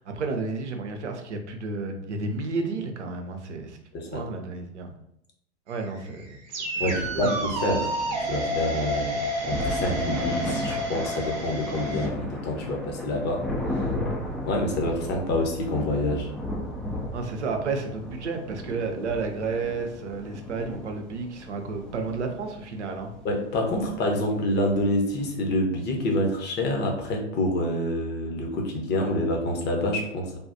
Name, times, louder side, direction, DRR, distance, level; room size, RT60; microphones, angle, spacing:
voice 1, 0.0-3.8 4.1-4.9 5.7-7.4 17.1-23.1, right 4 dB, 80° right, 4 dB, 0.7 m, -32 dB
voice 2, 3.9-4.2 6.8-7.9 8.2-13.5 13.7-13.8 14.5-16.3 23.2-30.4, left 1 dB, 30° left, 1 dB, 0.8 m, -27 dB
sound 1, 5.7-12.1, right 1 dB, 45° right, 0.8 m, -30 dB
sound 2, 6.8-25.3, left 1 dB, 5° left, 0.4 m, -35 dB
3.5 x 2.3 x 2.6 m, 0.74 s
figure-of-eight pair, 85°, 34 cm